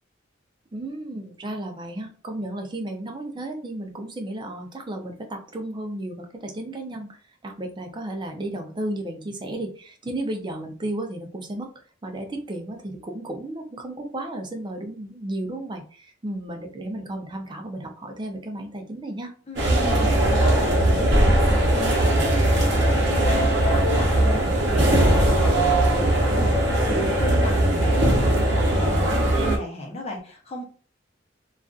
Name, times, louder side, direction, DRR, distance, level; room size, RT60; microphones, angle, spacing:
voice 1, 0.7-11.7 12.0-19.3, right 1 dB, 25° right, 3 dB, 0.5 m, -33 dB
voice 2, 19.5-30.6, left 1 dB, 35° left, 0 dB, 0.7 m, -35 dB
sound 1, 19.6-29.6, right 1 dB, 65° right, 0.7 m, -20 dB
2.5 x 2.4 x 2.3 m, 0.42 s
head